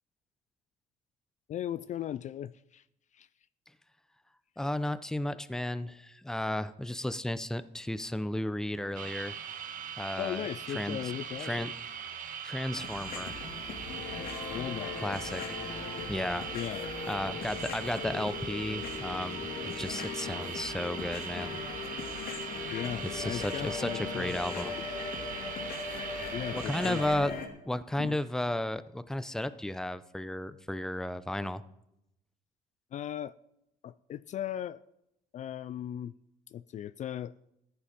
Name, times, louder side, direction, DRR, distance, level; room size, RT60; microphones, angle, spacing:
voice 1, 1.5-2.8 3.1-3.3 10.2-11.7 14.5-15.1 16.5-16.9 22.7-24.4 26.3-27.2 28.0-28.2 32.9-33.3 33.8-34.8 35.3-36.1 36.5-37.3, left 10 dB, 45° left, 0.4 m, -37 dB
voice 2, 4.6-9.4 10.0-10.5 10.7-11.1 11.4-11.7 12.4-13.4 15.0-15.6 16.1-16.5 17.1-21.6 23.0-24.8 26.5-27.3 27.6-31.6, left 1 dB, 5° left, 0.6 m, -34 dB
sound 1, 8.9-27.2, right 8 dB, 55° right, 1.4 m, -41 dB
sound 2, 12.7-27.5, left 5 dB, 60° left, 2.3 m, -39 dB
14.0 x 10.5 x 5.2 m
cardioid pair, 110°, 17 cm